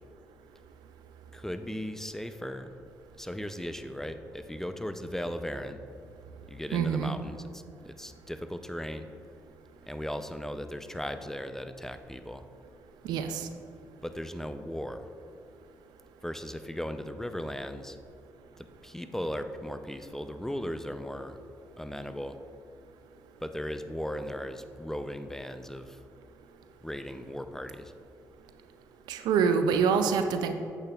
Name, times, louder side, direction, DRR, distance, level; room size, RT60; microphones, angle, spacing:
voice 1, 1.3-2.7 3.2-5.8 6.5-9.1 9.9-12.5 14.0-15.1 16.2-18.0 18.6-21.4 21.8-22.4 23.4-26.0 26.8-27.9, equal, 5° left, 9 dB, 0.5 m, -37 dB
voice 2, 6.7-7.1 13.0-13.5 29.1-30.5, right 6 dB, 80° right, 8 dB, 0.4 m, -26 dB
8.2 x 6.6 x 2.4 m, 2.6 s
supercardioid pair, 55°, 7 cm